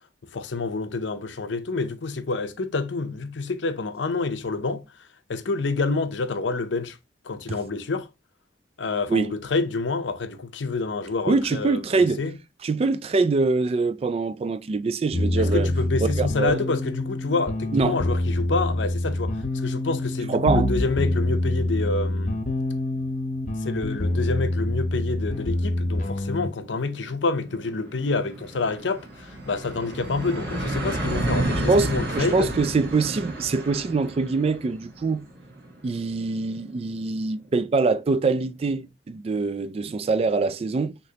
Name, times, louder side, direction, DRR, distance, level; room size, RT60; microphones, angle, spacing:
voice 1, 0.3-4.8 5.3-7.0 7.3-8.1 8.8-12.3 15.4-22.4 23.6-32.5, left 3 dB, 80° left, 0.6 m, -28 dB
voice 2, 11.3-12.2 12.6-15.7 16.2-16.7 17.7-18.0 20.3-20.7 31.7-35.3 35.8-41.0, right 3 dB, 35° right, 0.3 m, -24 dB
sound 1, 15.1-26.5, left 1 dB, 45° left, 0.8 m, -26 dB
sound 2, 26.5-37.7, right 1 dB, 60° right, 1.3 m, -32 dB
6.3 x 3.0 x 2.8 m
head